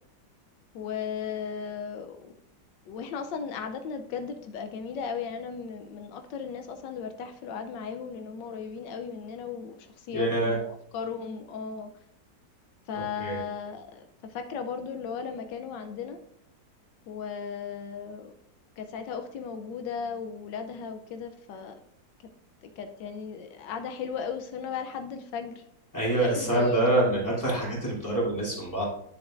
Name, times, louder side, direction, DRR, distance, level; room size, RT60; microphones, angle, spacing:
voice 1, 0.7-2.3 2.9-11.9 12.9-16.2 17.1-18.3 18.8-21.8 22.6-25.6 26.2-27.0, left 6 dB, 85° left, 7 dB, 1.3 m, -36 dB
voice 2, 10.1-10.6 13.2-13.4 25.9-28.8, right 1 dB, 10° left, -6 dB, 2.8 m, -25 dB
10.5 x 6.9 x 2.5 m, 0.71 s
omnidirectional pair, 1.9 m